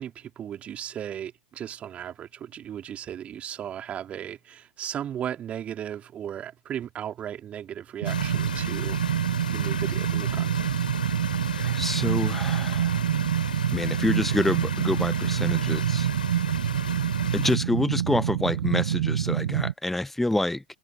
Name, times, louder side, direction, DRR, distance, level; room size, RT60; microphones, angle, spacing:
voice 1, 0.0-9.2 9.5-10.7, right 10 dB, 25° right, 2.8 m, -36 dB
sound 1, 8.0-17.6, left 6 dB, 75° left, 4.0 m, -36 dB
sound 2, 8.0-19.7, right 10 dB, 65° right, 1.6 m, -26 dB
voice 2, 11.5-13.0 13.7-16.1 17.3-20.6, left 1 dB, 5° left, 1.2 m, -27 dB
open air
figure-of-eight pair, 95°, 5 cm